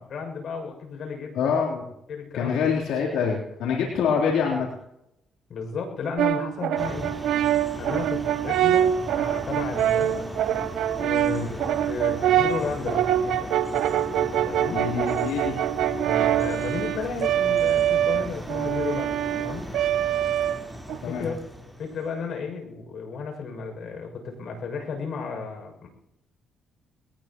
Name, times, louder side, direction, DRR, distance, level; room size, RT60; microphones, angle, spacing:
voice 1, 0.0-1.6 2.1-2.6 5.5-7.1 7.8-10.3 11.0-13.5 14.4-14.9 16.0-19.7 20.9-25.9, left 5 dB, 65° left, 3 dB, 6.7 m, -34 dB
voice 2, 1.4-1.8 2.3-4.7 11.3-11.5 14.6-15.6 21.0-21.3, left 6 dB, 90° left, -4 dB, 3.6 m, -25 dB
Brass instrument, 6.2-21.0, right 11 dB, 80° right, 0.9 m, -24 dB
sound 1, 6.8-22.2, equal, ahead, 4.1 m, -37 dB
22.0 x 19.0 x 3.1 m, 0.82 s
cardioid pair, 90°, 0 cm